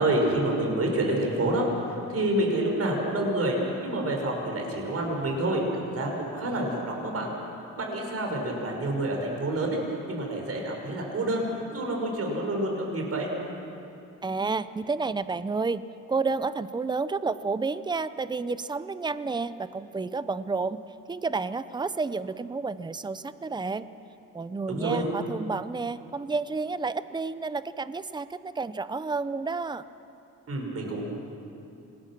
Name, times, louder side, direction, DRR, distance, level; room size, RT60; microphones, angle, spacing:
voice 1, 0.0-7.3 7.8-9.8 10.1-11.5 11.7-13.3 24.7-25.1 30.5-31.0, right 1 dB, 50° right, 1 dB, 5.6 m, -28 dB
voice 2, 14.2-15.8 16.1-20.8 21.1-23.9 24.3-29.8, right 4 dB, 15° right, 14 dB, 0.7 m, -30 dB
26.0 x 20.5 x 6.1 m, 2.8 s
cardioid pair, 90°, 30 cm